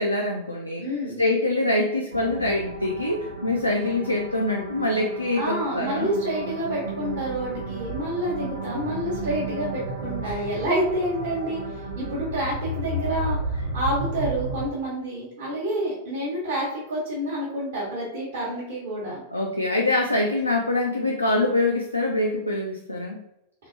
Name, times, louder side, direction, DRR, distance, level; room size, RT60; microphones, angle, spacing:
voice 1, 0.0-0.8 1.2-6.1 10.2-10.4 19.3-23.2, left 2 dB, 85° left, 0 dB, 0.3 m, -24 dB
voice 2, 0.8-1.2 5.3-11.6 11.9-19.2, equal, 60° right, -8 dB, 1.1 m, -28 dB
sound 1, 2.1-14.7, right 2 dB, 85° right, 0.8 m, -33 dB
3.6 x 2.1 x 2.6 m, 0.82 s
figure-of-eight pair, 90°, 0 cm